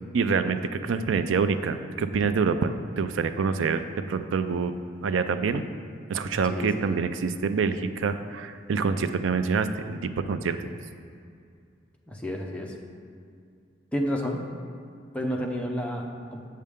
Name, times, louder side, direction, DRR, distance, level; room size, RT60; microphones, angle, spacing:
voice 1, 0.1-3.8 4.1-4.8 5.0-5.6 6.1-10.8, right 5 dB, 90° right, 10 dB, 0.4 m, -26 dB
voice 2, 6.5-7.0 12.1-12.7 13.9-14.4 15.1-16.5, equal, 5° left, 0 dB, 0.7 m, -30 dB
7.5 x 6.6 x 3.6 m, 2.3 s
head